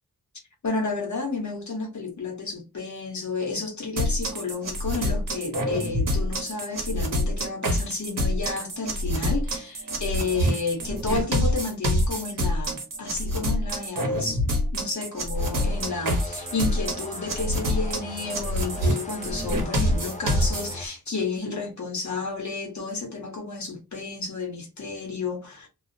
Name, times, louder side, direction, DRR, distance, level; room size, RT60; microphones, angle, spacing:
voice 1, 0.6-14.4 14.7-25.7, left 4 dB, 50° left, 1.0 m, -31 dB
sound 1, 4.0-20.7, equal, 60° right, 0.8 m, -26 dB
sound 2, 15.3-20.9, left 2 dB, 20° left, 0.4 m, -39 dB
2.3 x 2.0 x 2.6 m
wide cardioid pair, 140°, 38 cm